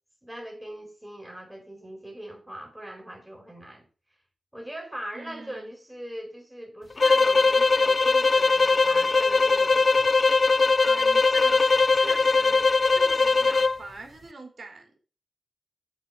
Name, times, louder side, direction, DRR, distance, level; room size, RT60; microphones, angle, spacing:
voice 1, 0.2-3.9 4.5-10.2, right 1 dB, 10° right, 4.0 m, -41 dB
voice 2, 5.1-5.7 10.2-12.7 12.9-15.0, right 3 dB, 60° right, 3.2 m, -44 dB
sound 1, 7.0-13.8, left 4 dB, 50° left, 0.4 m, -20 dB
8.9 x 4.6 x 7.4 m
cardioid pair, 50°, 0 cm